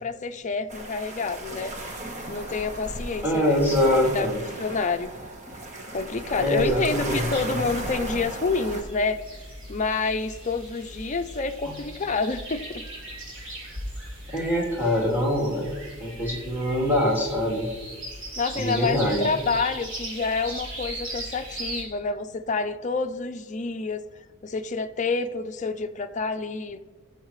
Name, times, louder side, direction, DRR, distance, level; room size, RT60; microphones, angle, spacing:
voice 1, 0.0-1.7 2.3-3.8 4.1-4.3 4.6-5.1 5.9-9.2 9.7-12.8 18.4-24.0 24.4-26.8, left 4 dB, 35° left, 7 dB, 0.6 m, -28 dB
sound 1, 0.7-8.8, right 1 dB, 35° right, 1.3 m, -35 dB
voice 2, 3.2-4.4 6.4-7.4 11.6-11.7 14.3-15.7 16.0-17.7 18.5-19.3, left 1 dB, 10° right, -5 dB, 3.1 m, -24 dB
sound 2, 7.0-21.8, right 1 dB, 60° right, 3.9 m, -39 dB
17.5 x 7.3 x 3.2 m, 1.3 s
head